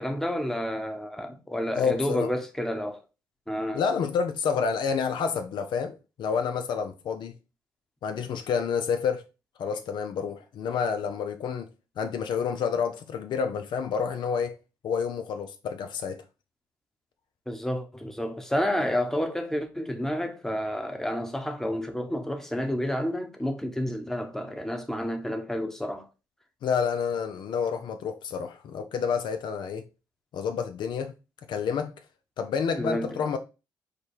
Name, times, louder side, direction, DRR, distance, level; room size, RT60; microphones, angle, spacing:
voice 1, 0.0-3.0 3.5-3.8 17.5-26.0 32.8-33.1, equal, 5° left, 0.9 m, -30 dB
voice 2, 1.7-2.3 3.7-7.3 8.0-9.2 9.6-11.7 12.0-14.6 14.8-16.2 26.6-29.8 30.3-31.1 31.5-31.9 32.4-33.4, left 6 dB, 65° left, 0.5 m, -29 dB
4.9 x 2.3 x 4.3 m
supercardioid pair, 65°, 9 cm